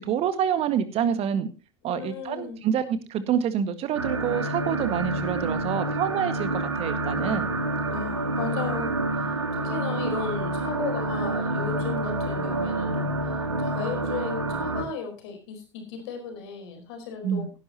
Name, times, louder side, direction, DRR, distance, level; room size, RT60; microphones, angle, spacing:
voice 1, 0.1-1.5 1.8-7.5 17.2-17.5, right 8 dB, 40° right, 11 dB, 1.8 m, -27 dB
voice 2, 1.9-2.6 7.9-13.3 13.6-17.5, left 6 dB, 60° left, 5 dB, 4.5 m, -35 dB
sound 1, 3.9-14.8, right 2 dB, 80° right, 1.9 m, -28 dB
17.0 x 11.0 x 2.9 m, 0.30 s
figure-of-eight pair, 70°, 15 cm